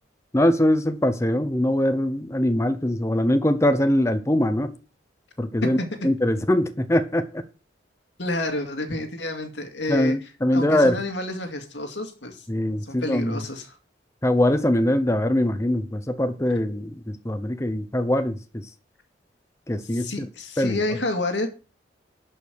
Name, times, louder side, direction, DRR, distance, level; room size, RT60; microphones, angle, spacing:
voice 1, 0.3-4.7 5.4-5.8 6.0-7.4 9.9-11.0 12.5-13.4 14.2-18.7 19.7-20.3 20.6-20.8, left 1 dB, 15° left, 0.8 m, -22 dB
voice 2, 8.2-10.2 10.5-12.5 12.8-13.8 19.9-21.5, left 2 dB, 70° left, 2.2 m, -29 dB
11.5 x 5.5 x 6.3 m
head